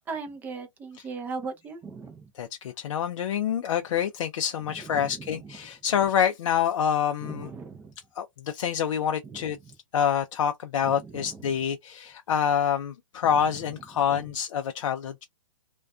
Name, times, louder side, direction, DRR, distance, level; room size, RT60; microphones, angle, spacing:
voice 1, 0.1-2.3 4.8-5.3 7.2-7.9 9.2-9.4 10.8-11.5 14.1-14.2, right 4 dB, 10° right, 0.4 m, -38 dB
voice 2, 2.4-7.5 8.2-9.6 9.9-15.2, left 8 dB, 65° left, 0.4 m, -27 dB
2.4 x 2.2 x 2.3 m
hypercardioid pair, 145°, 17 cm